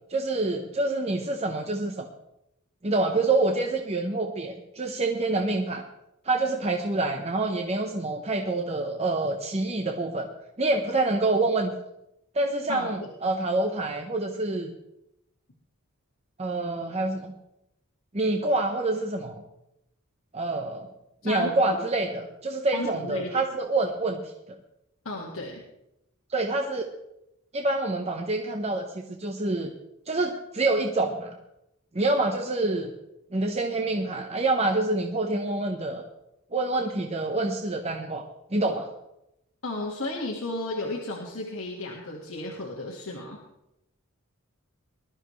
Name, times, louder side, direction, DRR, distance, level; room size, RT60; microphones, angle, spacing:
voice 1, 0.1-2.1 2.8-5.8 6.2-10.3 10.6-11.7 12.3-14.7 16.4-17.3 18.1-19.4 20.3-20.9 21.2-24.3 26.3-26.8 27.5-29.7 30.1-31.4 31.9-32.9 33.3-36.0 36.5-38.9, right 2 dB, 30° right, 3 dB, 0.9 m, -27 dB
voice 2, 21.2-21.8 22.7-23.3 25.1-25.6 39.6-43.4, left 2 dB, 70° left, -1 dB, 1.9 m, -34 dB
20.0 x 12.5 x 3.2 m, 0.86 s
head